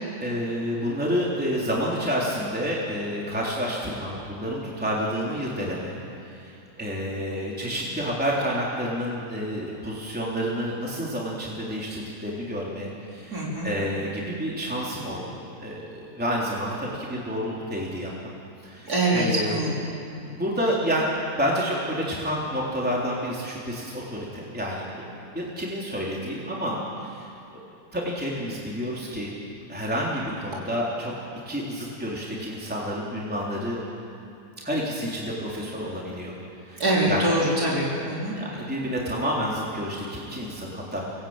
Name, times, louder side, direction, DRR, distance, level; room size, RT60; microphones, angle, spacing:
voice 1, 0.2-6.0 6.3-18.3 18.6-20.0 20.3-21.0 21.3-25.0 25.3-26.8 27.0-27.3 27.9-29.3 29.7-31.1 31.4-33.8 34.6-36.3 36.7-37.2 38.3-41.1, equal, 5° right, -5 dB, 3.4 m, -29 dB
voice 2, 13.3-13.7 18.9-19.8 36.8-38.4, right 1 dB, 70° right, -5 dB, 4.4 m, -24 dB
24.5 x 18.0 x 8.8 m, 2.9 s
omnidirectional pair, 1.7 m